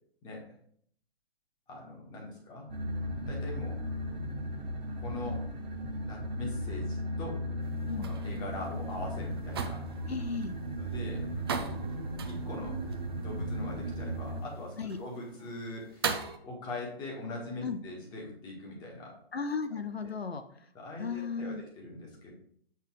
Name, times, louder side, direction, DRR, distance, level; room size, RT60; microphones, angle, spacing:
voice 1, 1.7-2.7 3.3-3.8 5.0-5.5 6.0-7.7 8.0-9.8 10.8-11.3 11.6-11.8 12.2-12.8 13.1-16.2 16.4-19.2 20.0-20.1 20.7-22.3, left 2 dB, 15° left, -1 dB, 1.6 m, -41 dB
sound 1, 2.7-14.4, equal, 45° right, 1.8 m, -36 dB
sound 2, 7.6-16.4, right 5 dB, 25° right, 0.5 m, -40 dB
voice 2, 10.1-10.6 14.8-15.0 17.6-17.8 19.3-20.4 21.0-21.6, left 5 dB, 75° left, 9 dB, 0.8 m, -35 dB
8.1 x 3.9 x 4.8 m, 0.64 s
figure-of-eight pair, 135°, 31 cm